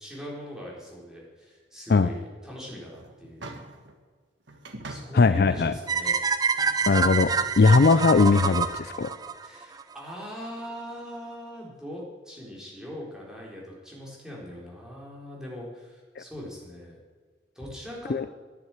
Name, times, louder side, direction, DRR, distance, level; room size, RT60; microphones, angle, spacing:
voice 1, 0.0-3.5 4.9-6.2 9.4-17.0 17.6-18.2, equal, 5° right, -4 dB, 3.9 m, -41 dB
sound 1, 2.8-3.9 4.5-5.8 6.1-6.2 6.6-7.8, right 2 dB, 75° right, 1.5 m, -44 dB
voice 2, 5.1-5.7 6.9-7.3 7.6-9.1 16.2-16.3 18.1-18.2, left 4 dB, 55° left, 13 dB, 0.4 m, -19 dB
sound 2, 5.9-10.0, right 5 dB, 20° right, 0.6 m, -26 dB
11.0 x 9.7 x 8.4 m, 1.4 s
head